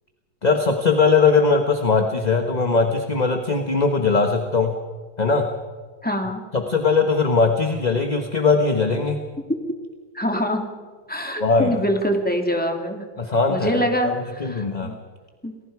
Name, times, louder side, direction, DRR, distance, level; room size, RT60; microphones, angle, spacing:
voice 1, 0.4-4.7 5.2-5.5 6.5-9.2 11.4-11.8 13.2-13.8 14.4-14.9, left 4 dB, 25° left, 5 dB, 1.1 m, -20 dB
voice 2, 6.0-6.4 10.1-10.7 11.1-13.0 13.5-14.9 15.4-15.5, equal, 5° left, 3 dB, 2.4 m, -24 dB
29.0 x 20.0 x 4.8 m, 1.5 s
omnidirectional pair, 2.2 m